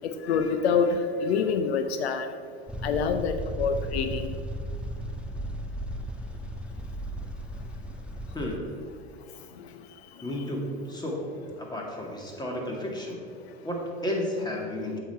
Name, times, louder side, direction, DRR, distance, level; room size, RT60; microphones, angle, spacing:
voice 1, 0.0-2.3 2.8-4.3, left 5 dB, 85° left, 9 dB, 0.7 m, -26 dB
sound 1, 2.7-8.6, right 1 dB, 5° right, 0.5 m, -35 dB
voice 2, 8.3-8.7 10.2-11.2 11.6-13.2 13.6-15.0, left 1 dB, 15° left, -1 dB, 2.2 m, -32 dB
8.5 x 7.7 x 4.5 m, 2.2 s
hypercardioid pair, 105°, 31 cm